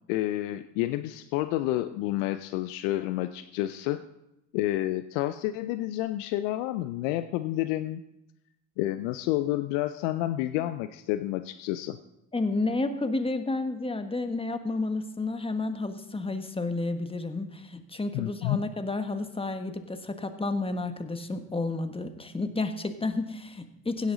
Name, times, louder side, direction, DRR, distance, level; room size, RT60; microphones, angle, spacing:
voice 1, 0.1-4.0 4.5-8.0 8.8-12.0 18.1-18.6, left 15 dB, 75° left, 11 dB, 0.6 m, -29 dB
voice 2, 12.3-24.1, left 3 dB, 15° left, 8 dB, 1.4 m, -31 dB
16.5 x 8.3 x 4.0 m, 0.86 s
hypercardioid pair, 55°, 39 cm